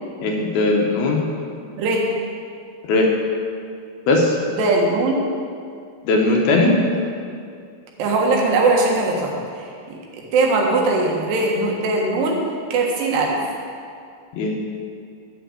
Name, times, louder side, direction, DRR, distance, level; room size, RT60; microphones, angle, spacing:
voice 1, 0.2-1.2 2.9-3.1 4.1-4.4 6.0-6.8 14.3-14.7, left 2 dB, 70° left, 0 dB, 2.9 m, -18 dB
voice 2, 4.5-5.3 8.0-10.0 10.3-12.4 12.7-13.4, right 3 dB, 75° right, -1 dB, 3.6 m, -20 dB
12.5 x 6.1 x 8.2 m, 2.3 s
omnidirectional pair, 4.9 m